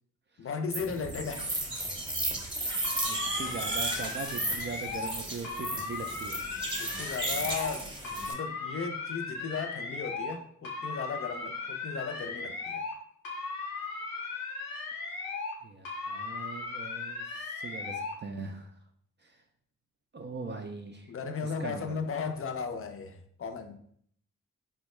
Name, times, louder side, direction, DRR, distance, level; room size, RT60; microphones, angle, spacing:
voice 1, 0.4-1.5 6.7-7.9 8.3-12.8 21.1-23.8, left 5 dB, 40° left, 5 dB, 0.5 m, -36 dB
sound 1, 0.7-8.3, right 2 dB, 15° right, 0.8 m, -34 dB
sound 2, 2.8-5.2 5.4-7.8 8.0-10.4 10.6-13.0 13.2-15.6 15.9-18.2, left 4 dB, 85° left, 0.7 m, -37 dB
voice 2, 3.0-6.4 15.6-18.7 19.2-19.4 20.1-21.1 21.4-22.0, right 4 dB, 35° right, 3 dB, 0.4 m, -41 dB
3.4 x 2.1 x 3.0 m, 0.64 s
supercardioid pair, 50°, 35 cm